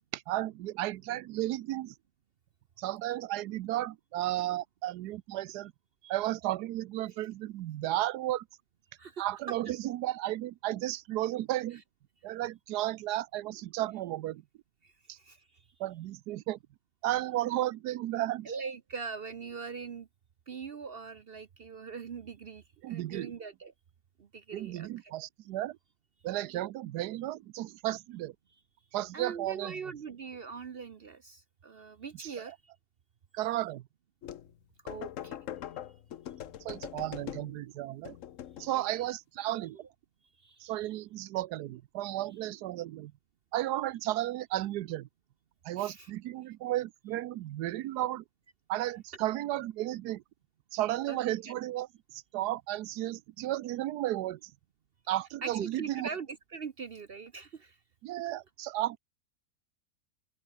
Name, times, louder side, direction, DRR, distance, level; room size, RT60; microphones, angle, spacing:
voice 1, 0.1-1.9 2.8-5.7 6.0-8.4 9.2-11.8 12.2-14.4 15.1-15.2 15.8-16.6 17.0-18.5 22.8-23.3 24.5-25.8 26.2-28.3 28.9-29.8 33.3-33.8 36.6-38.2 38.6-39.8 40.6-43.1 43.5-45.1 45.6-48.2 48.7-50.2 50.7-54.5 55.1-56.1 58.0-59.0, right 14 dB, 90° right, 1.2 m, -33 dB
voice 2, 14.8-15.7 18.4-20.1 20.5-23.7 24.2-25.1 29.1-32.6 34.8-35.4 38.7-39.0 40.4-40.9 45.7-46.1 51.1-51.2 51.5-51.6 55.4-57.8, right 5 dB, 50° right, 0.8 m, -42 dB
sound 1, 34.2-34.5 34.9-37.6 38.0-38.8, left 11 dB, 60° left, 1.0 m, -42 dB
open air
omnidirectional pair, 1.7 m